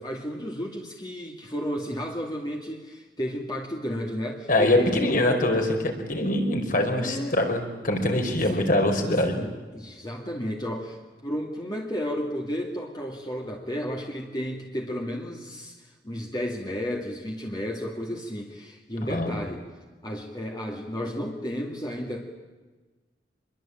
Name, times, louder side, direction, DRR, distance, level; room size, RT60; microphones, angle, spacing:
voice 1, 0.0-5.1 7.0-7.4 8.3-8.6 9.0-19.6 20.0-22.2, equal, 25° left, 0 dB, 2.3 m, -33 dB
voice 2, 4.5-9.3 19.1-19.4, left 1 dB, 50° left, 4 dB, 4.9 m, -23 dB
26.0 x 22.0 x 9.0 m, 1.3 s
head